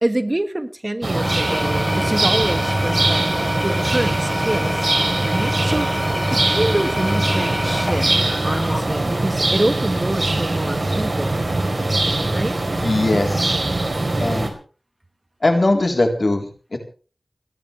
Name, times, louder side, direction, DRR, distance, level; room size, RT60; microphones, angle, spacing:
voice 1, 0.0-3.2 3.6-4.9 5.2-8.1 8.4-11.5 12.3-12.6, right 1 dB, 30° right, 9 dB, 1.4 m, -25 dB
Engine / Tools, 1.0-9.3, equal, 20° left, 2.7 m, -27 dB
sound 1, 1.0-14.5, right 2 dB, 50° right, 4.2 m, -22 dB
voice 2, 12.8-13.6 14.2-14.5 15.4-16.8, left 2 dB, 60° left, 3 dB, 3.8 m, -20 dB
29.5 x 11.0 x 3.4 m, 0.38 s
wide cardioid pair, 50°, 0 cm